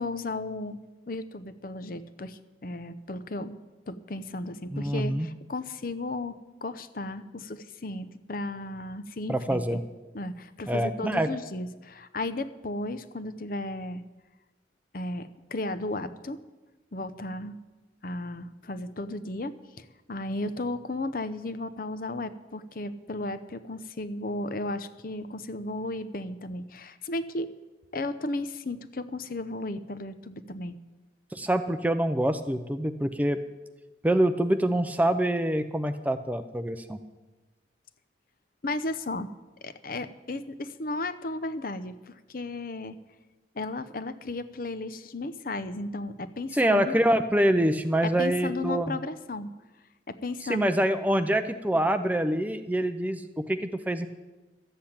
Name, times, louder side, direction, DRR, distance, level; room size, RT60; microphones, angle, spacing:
voice 1, 0.0-3.6 3.9-9.8 10.1-14.0 14.9-16.4 16.9-17.6 18.0-27.5 27.9-30.8 38.6-39.3 39.6-43.0 43.5-46.9 48.0-49.5 50.1-50.7, left 2 dB, 50° left, 12 dB, 0.7 m, -34 dB
voice 2, 4.7-5.3 9.3-9.8 10.7-11.3 31.3-33.4 34.0-37.0 46.5-49.0 50.5-54.1, right 1 dB, 10° right, 9 dB, 0.6 m, -25 dB
13.0 x 7.8 x 8.7 m, 1.1 s
head